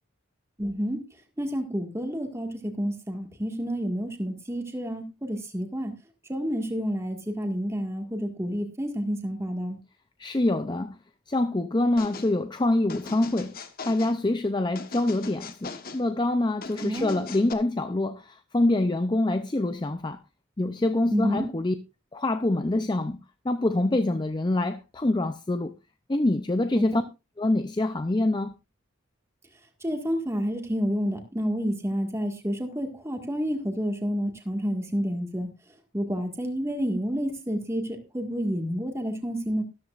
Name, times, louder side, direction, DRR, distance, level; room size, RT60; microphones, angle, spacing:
voice 1, 0.6-1.0 1.4-5.9 6.3-9.8 16.8-17.2 21.1-21.5 26.7-27.0 29.8-35.5 35.9-39.6, equal, 15° right, 1.8 m, -29 dB
voice 2, 10.2-11.0 11.3-20.2 20.6-21.7 22.1-23.2 23.4-25.7 26.1-27.0 27.4-28.5, left 2 dB, 20° left, 0.5 m, -25 dB
sound 1, 12.0-12.3 12.9-14.2 14.7-16.0 16.6-17.5, left 4 dB, 45° left, 1.2 m, -40 dB
13.5 x 13.0 x 2.5 m
head